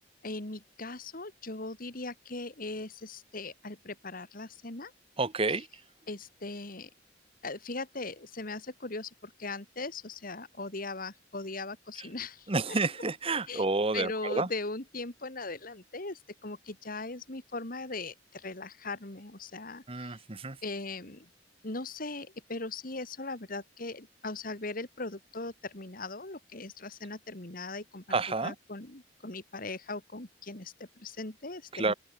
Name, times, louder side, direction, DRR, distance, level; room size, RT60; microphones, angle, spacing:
voice 1, 0.2-4.9 6.1-6.9 7.4-12.8 13.5-13.6 13.9-20.2 20.6-21.3 21.6-28.0 28.4-31.9, left 3 dB, 50° left, 2.5 m, -39 dB
voice 2, 5.2-5.7 12.5-14.5 19.9-20.6 28.1-28.5 31.7-31.9, right 3 dB, 30° right, 1.2 m, -29 dB
open air
head